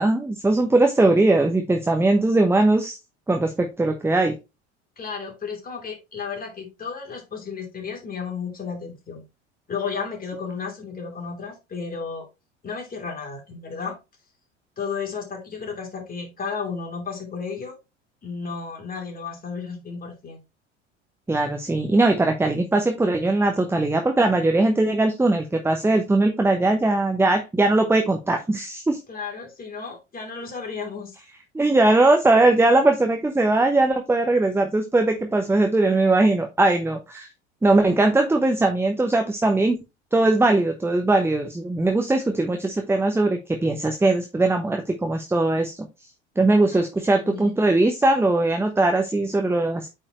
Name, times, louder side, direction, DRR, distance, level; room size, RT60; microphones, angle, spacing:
voice 1, 0.0-3.0 3.3-4.4 21.3-29.0 31.5-37.3 37.6-39.8 40.1-45.9 46.4-49.9, right 2 dB, 5° right, 5 dB, 0.9 m, -20 dB
voice 2, 5.0-9.2 9.7-12.3 12.6-14.0 14.8-17.7 18.2-20.4 29.1-31.1 46.7-46.8 47.1-47.6, left 5 dB, 25° left, 2 dB, 2.8 m, -33 dB
8.6 x 4.6 x 3.1 m, 0.25 s
figure-of-eight pair, 75°, 36 cm